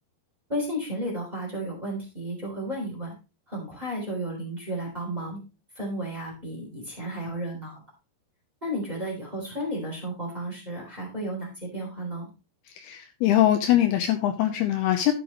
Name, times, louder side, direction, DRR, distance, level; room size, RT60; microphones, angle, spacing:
voice 1, 0.5-3.1 3.5-5.4 5.7-7.8 8.6-12.3, right 1 dB, 10° right, -2 dB, 3.0 m, -33 dB
voice 2, 12.8-15.1, left 12 dB, 80° left, 7 dB, 2.5 m, -22 dB
12.0 x 8.0 x 3.0 m, 0.29 s
omnidirectional pair, 5.1 m